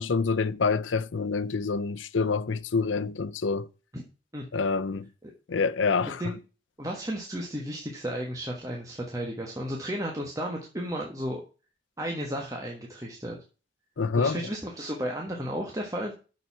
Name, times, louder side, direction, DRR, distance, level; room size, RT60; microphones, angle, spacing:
voice 1, 0.0-3.7 4.5-5.1 5.5-6.2 14.0-14.4, left 4 dB, 85° left, 0.6 m, -27 dB
voice 2, 6.8-11.4 12.0-13.4 14.2-16.1, equal, 20° right, 1.4 m, -33 dB
7.1 x 6.8 x 5.8 m
head